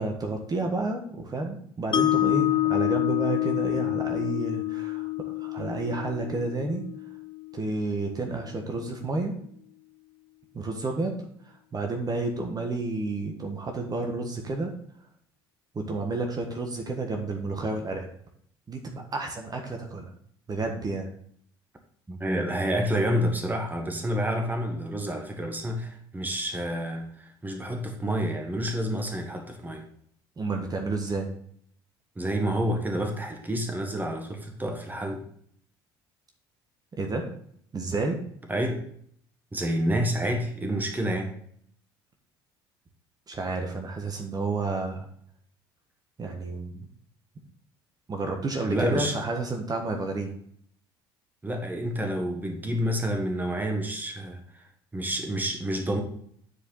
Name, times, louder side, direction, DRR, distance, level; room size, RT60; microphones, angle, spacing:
voice 1, 0.0-6.8 7.5-9.4 10.5-11.3 11.7-14.7 15.7-18.1 18.7-20.1 20.5-21.1 30.4-31.3 37.0-37.2 37.7-38.2 43.3-45.0 46.2-46.8 48.1-50.3, right 3 dB, 30° right, 3 dB, 1.5 m, -30 dB
Mallet percussion, 1.9-8.1, left 16 dB, 40° left, 0.6 m, -28 dB
voice 2, 22.1-29.9 32.2-35.2 38.5-38.9 39.5-41.3 48.6-49.2 51.4-54.6 54.9-56.0, equal, 15° right, 4 dB, 1.5 m, -29 dB
9.8 x 4.9 x 3.9 m, 0.63 s
figure-of-eight pair, 55°, 12 cm